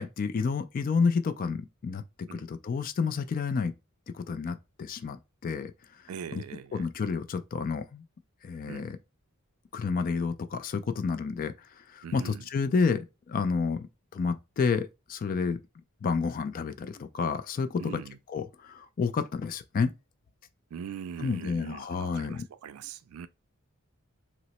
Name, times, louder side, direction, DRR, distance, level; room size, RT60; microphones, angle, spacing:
voice 1, 0.0-3.7 4.1-5.7 6.3-6.4 6.7-8.0 8.4-9.0 9.7-11.5 11.9-13.9 14.1-15.6 16.0-17.9 18.3-19.9 21.2-22.5, left 5 dB, 40° left, 0.3 m, -30 dB
voice 2, 6.1-6.9 8.7-8.9 12.0-12.5 17.8-18.2 20.7-23.3, right 8 dB, 80° right, 0.3 m, -41 dB
2.8 x 2.0 x 4.0 m
head